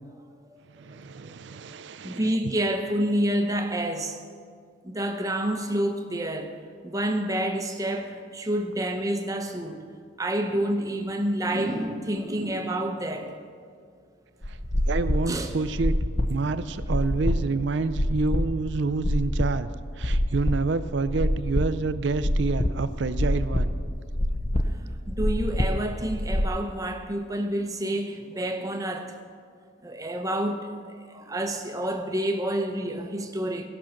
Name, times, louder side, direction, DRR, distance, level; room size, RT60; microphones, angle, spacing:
voice 1, 0.7-2.2 14.5-14.6 14.9-16.0 16.3-19.7 20.0-23.7, right 3 dB, 65° right, 0.5 m, -28 dB
voice 2, 2.0-4.2 4.8-6.6 6.8-9.8 10.2-13.4 15.3-15.6 25.1-29.2 29.8-33.7, right 1 dB, 15° right, 0.7 m, -28 dB
sound 1, 14.4-26.5, left 1 dB, 30° left, 0.6 m, -27 dB
15.5 x 6.2 x 5.8 m
head